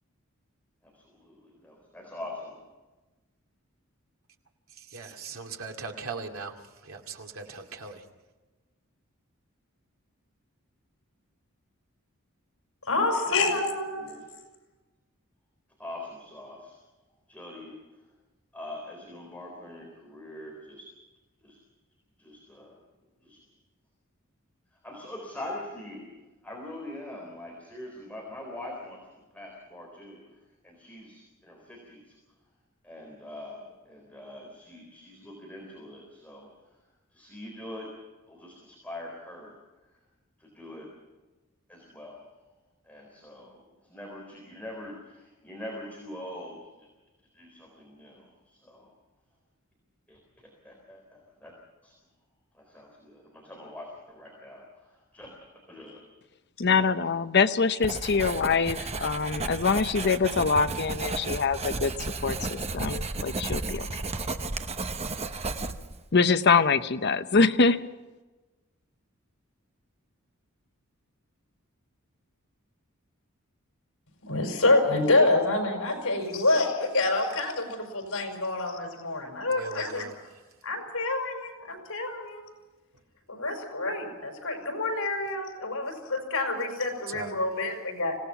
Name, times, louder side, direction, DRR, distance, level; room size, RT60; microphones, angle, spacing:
voice 1, 0.8-2.7 13.9-14.3 15.8-16.8 17.3-17.8 18.5-20.9 21.4-21.6 22.2-22.8 23.2-23.4 24.8-26.1 26.4-30.2 30.6-32.2 32.8-36.5 37.1-37.9 38.3-39.6 40.4-40.9 41.7-42.2 42.8-46.9 47.3-48.9 50.1-51.5 51.8-51.9 52.5-55.3 55.7-56.0, left 1 dB, 5° left, -2 dB, 4.0 m, -43 dB
voice 2, 4.7-8.0 79.5-80.4 87.1-87.3, right 4 dB, 85° right, 2 dB, 2.4 m, -40 dB
voice 3, 12.9-14.2 74.2-80.0 80.6-82.4 83.3-88.2, left 2 dB, 85° left, 4 dB, 5.3 m, -27 dB
voice 4, 56.6-61.9 62.2-63.9 66.1-67.9, left 4 dB, 55° left, 10 dB, 0.8 m, -24 dB
Writing, 57.8-66.0, right 3 dB, 30° right, 1.0 m, -33 dB
26.0 x 17.5 x 5.8 m, 1.2 s
head